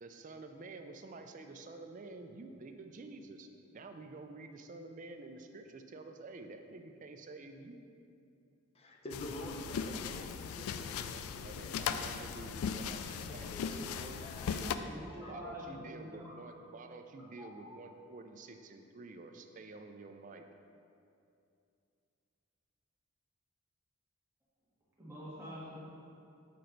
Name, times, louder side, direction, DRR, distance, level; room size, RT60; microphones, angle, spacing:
voice 1, 0.0-7.8 11.1-14.9 15.3-20.4, right 3 dB, 35° right, 6 dB, 0.3 m, -50 dB
voice 2, 8.7-11.1 11.3-11.7 13.3-14.8 15.1-15.3, left 1 dB, 30° left, 1 dB, 0.5 m, -47 dB
sound 1, 9.1-14.8, left 7 dB, 85° left, 0.3 m, -38 dB
voice 3, 14.8-16.2 17.4-17.7 25.0-25.8, equal, 10° right, -9 dB, 1.5 m, -46 dB
6.8 x 4.3 x 3.9 m, 2.6 s
head